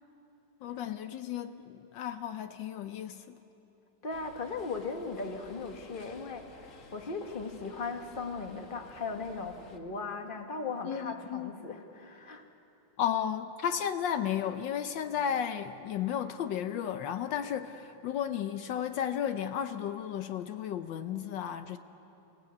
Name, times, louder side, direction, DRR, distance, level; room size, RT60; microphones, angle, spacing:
voice 1, 0.6-3.4 10.8-11.5 13.0-21.8, left 9 dB, 75° left, 9 dB, 1.4 m, -33 dB
voice 2, 4.0-12.4, left 4 dB, 30° left, 4 dB, 1.7 m, -38 dB
sound 1, 4.1-9.8, left 4 dB, 45° left, 1.6 m, -53 dB
29.5 x 17.0 x 8.6 m, 2.9 s
omnidirectional pair, 2.0 m